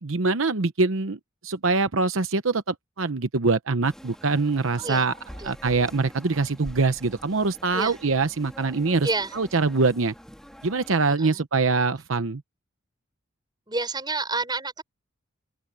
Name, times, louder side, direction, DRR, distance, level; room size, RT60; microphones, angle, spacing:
voice 1, 0.0-5.1 5.4-10.1 10.6-12.4, right 3 dB, 70° right, 0.9 m, -24 dB
sound 1, 3.8-11.1, equal, 5° left, 2.6 m, -46 dB
voice 2, 9.0-9.4 11.2-11.4 13.7-14.8, right 3 dB, 20° right, 6.4 m, -29 dB
open air
head